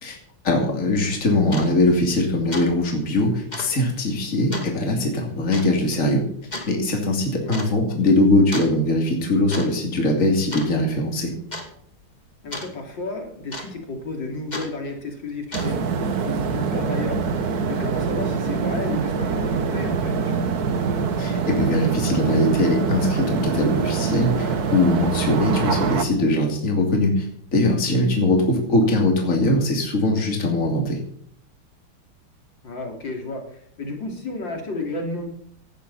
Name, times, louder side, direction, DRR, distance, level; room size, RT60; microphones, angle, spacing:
voice 1, 0.4-6.2 6.7-11.3 21.2-27.3 27.5-31.0, left 2 dB, 40° left, 1 dB, 3.1 m, -21 dB
Clock ticking, 1.4-1.7 2.1-2.2 2.5-2.7 3.0-3.1 3.5-3.7 4.5-4.7 5.5-5.7 6.5-6.7 7.5-7.7 8.5-8.8 9.3-9.7 9.9-10.2 10.5-11.0 11.5-11.7 12.5-12.7 13.5-13.9 14.5-14.7 15.3-15.9, left 2 dB, 20° left, 2.5 m, -33 dB
voice 2, 7.3-7.7 12.4-17.2 17.7-20.5 32.6-35.3, left 2 dB, 60° left, 2 dB, 3.6 m, -32 dB
Ambiência de uma Urbanização, 15.5-26.0, right 5 dB, 50° right, 1.5 m, -24 dB
17.5 x 12.5 x 4.2 m, 0.64 s
omnidirectional pair, 2.3 m